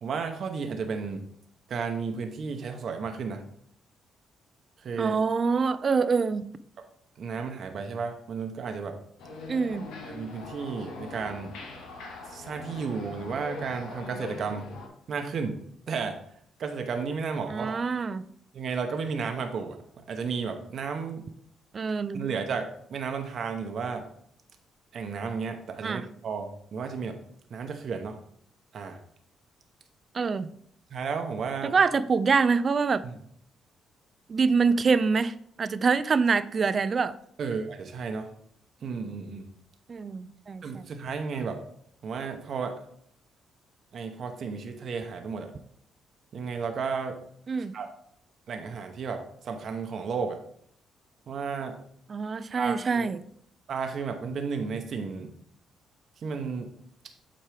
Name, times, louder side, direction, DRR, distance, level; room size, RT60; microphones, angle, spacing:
voice 1, 0.0-1.2 1.7-3.4 4.8-5.2 7.2-9.0 10.0-11.6 12.2-14.8 15.1-16.2 16.6-17.8 18.5-21.3 22.1-24.0 24.9-27.2 27.5-28.2 28.7-29.0 30.9-31.8 33.0-33.1 37.4-38.3 38.8-39.5 40.6-41.6 42.0-42.8 43.9-45.5 46.3-47.2 47.7-47.9 48.5-50.4 51.3-51.8 52.5-53.1 53.7-55.3 56.2-56.7, right 5 dB, 60° right, 5 dB, 0.8 m, -33 dB
voice 2, 5.0-6.4 9.5-9.9 17.5-18.3 21.7-22.2 25.8-26.1 30.1-30.5 31.6-33.0 34.3-37.1 39.9-40.9 47.5-47.8 52.1-53.2, right 5 dB, 40° right, 14 dB, 0.4 m, -25 dB
sound 1, 9.2-14.9, left 3 dB, 85° left, 1.2 m, -41 dB
7.5 x 4.4 x 3.4 m, 0.66 s
cardioid pair, 90°, 0 cm